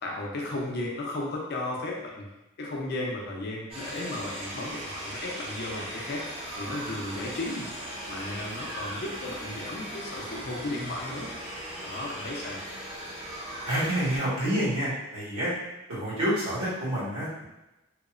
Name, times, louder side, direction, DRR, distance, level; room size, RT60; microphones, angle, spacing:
voice 1, 0.0-2.3 2.6-6.2 6.6-7.7 8.1-11.3 11.8-12.6, left 2 dB, 50° left, -2 dB, 0.5 m, -34 dB
sound 1, 3.7-14.2, right 1 dB, 25° right, 0.5 m, -38 dB
voice 2, 13.6-15.5 15.9-17.4, equal, 85° right, -9 dB, 1.4 m, -28 dB
2.8 x 2.0 x 2.4 m, 0.96 s
head